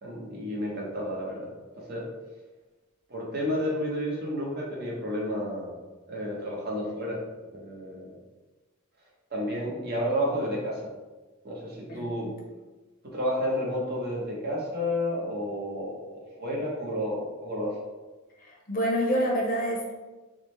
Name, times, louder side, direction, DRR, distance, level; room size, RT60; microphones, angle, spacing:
voice 1, 0.0-1.5 1.7-2.0 3.1-5.7 6.1-7.2 7.5-8.1 9.3-10.9 11.4-12.3 13.1-17.7, equal, 50° right, -3 dB, 1.0 m, -31 dB
voice 2, 11.9-12.3 18.4-19.9, equal, 45° left, -1 dB, 0.9 m, -28 dB
3.8 x 3.2 x 3.2 m, 1.2 s
head